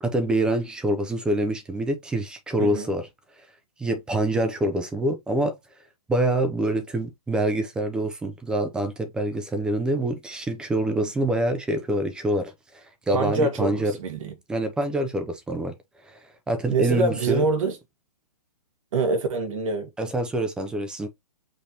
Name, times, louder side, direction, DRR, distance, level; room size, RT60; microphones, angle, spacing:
voice 1, 0.0-3.1 3.8-5.5 6.1-13.9 14.5-15.7 16.0-16.2 16.5-17.5 20.0-21.1, right 1 dB, 5° right, 0.4 m, -26 dB
voice 2, 2.6-2.9 13.1-14.3 16.7-17.8 18.9-19.9, right 3 dB, 55° right, 1.4 m, -25 dB
5.2 x 2.7 x 2.8 m
hypercardioid pair, 145°, 20 cm